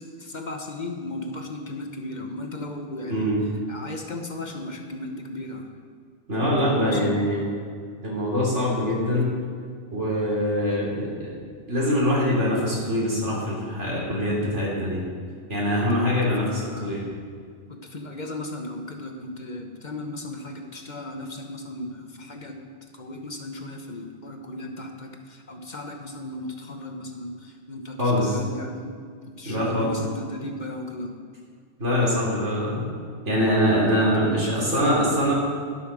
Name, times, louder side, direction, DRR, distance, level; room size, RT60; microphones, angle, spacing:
voice 1, 0.0-3.3 3.7-5.7 6.4-7.5 15.9-17.0 17.7-31.2 33.6-35.3, left 2 dB, 45° left, 4 dB, 1.1 m, -36 dB
voice 2, 3.1-3.4 6.3-7.4 8.0-9.3 9.9-11.4 11.7-15.0 15.5-17.0 28.0-28.4 29.4-29.9 31.8-32.9 33.2-35.3, equal, 90° right, -5 dB, 3.9 m, -23 dB
11.0 x 8.4 x 6.2 m, 2.1 s
omnidirectional pair, 1.2 m